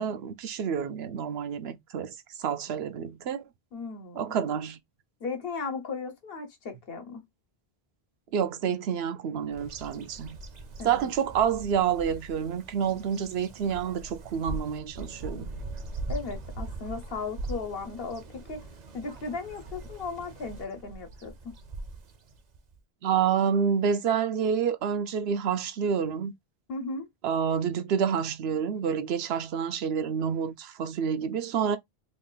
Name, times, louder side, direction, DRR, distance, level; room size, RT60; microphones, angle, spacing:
voice 1, 0.0-3.4 4.2-4.8 8.3-10.4 10.8-15.5 23.0-26.3 27.2-31.8, right 7 dB, 80° right, 0.8 m, -28 dB
voice 2, 3.7-4.4 5.2-7.2 10.8-11.1 16.1-18.7 18.9-21.6 26.7-27.1, left 4 dB, 65° left, 1.1 m, -36 dB
Bird vocalization bird call bird song, 9.5-22.8, right 2 dB, 50° right, 0.6 m, -41 dB
2.9 x 2.4 x 3.8 m
omnidirectional pair, 1.0 m